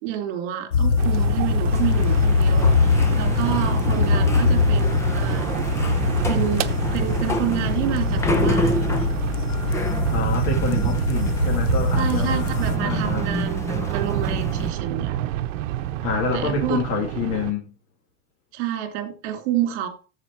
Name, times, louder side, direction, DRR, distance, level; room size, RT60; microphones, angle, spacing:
voice 1, 0.0-5.5 6.3-6.7 6.9-9.0 11.9-15.2 16.3-16.8 18.5-19.9, right 11 dB, 55° right, 2.8 m, -28 dB
sound 1, 0.7-12.8, left 5 dB, 70° left, 1.3 m, -22 dB
sound 2, 1.0-17.5, right 12 dB, 85° right, 0.9 m, -27 dB
sound 3, 1.7-14.7, left 1 dB, 10° left, 0.6 m, -30 dB
voice 2, 10.1-12.4 12.8-13.3 16.0-17.7, left 4 dB, 35° left, 2.2 m, -27 dB
13.5 x 4.9 x 4.5 m
supercardioid pair, 170°, 38 cm